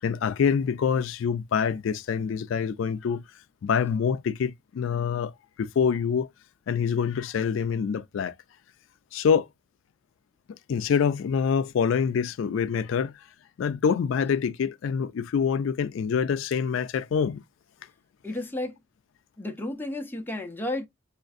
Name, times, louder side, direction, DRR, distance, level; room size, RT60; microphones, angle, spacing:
voice 1, 0.0-3.2 3.6-5.3 5.6-6.3 6.7-8.4 9.1-9.5 10.7-13.3 13.6-17.4, left 6 dB, 70° left, 0.3 m, -26 dB
voice 2, 18.2-18.8 19.4-20.9, left 1 dB, 10° left, 0.6 m, -32 dB
5.0 x 2.5 x 2.4 m
head